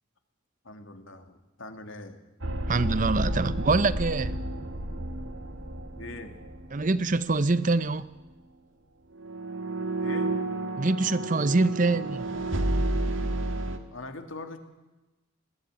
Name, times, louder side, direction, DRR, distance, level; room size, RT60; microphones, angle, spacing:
voice 1, 0.6-2.2 6.0-6.3 10.0-10.3 13.9-14.6, left 2 dB, 80° left, 2.4 m, -42 dB
sound 1, 2.4-7.3 7.5-7.8 9.2-13.8, right 1 dB, 80° right, 1.9 m, -31 dB
voice 2, 2.7-4.3 6.7-8.1 10.8-12.3, right 3 dB, 40° right, 0.8 m, -25 dB
21.0 x 14.5 x 9.7 m
head